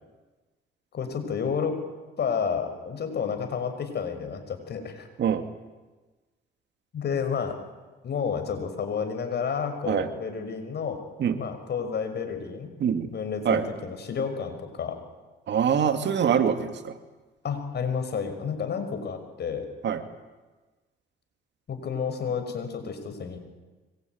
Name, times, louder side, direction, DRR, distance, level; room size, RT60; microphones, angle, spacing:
voice 1, 0.9-1.8 2.2-5.1 6.9-7.5 8.0-11.0 11.4-12.7 13.1-15.0 17.4-19.7 21.7-23.4, left 6 dB, 55° left, 7 dB, 5.9 m, -30 dB
voice 2, 15.5-16.9 19.8-20.0, right 8 dB, 60° right, 8 dB, 2.5 m, -24 dB
25.0 x 22.5 x 9.5 m, 1.2 s
cardioid pair, 90°, 20 cm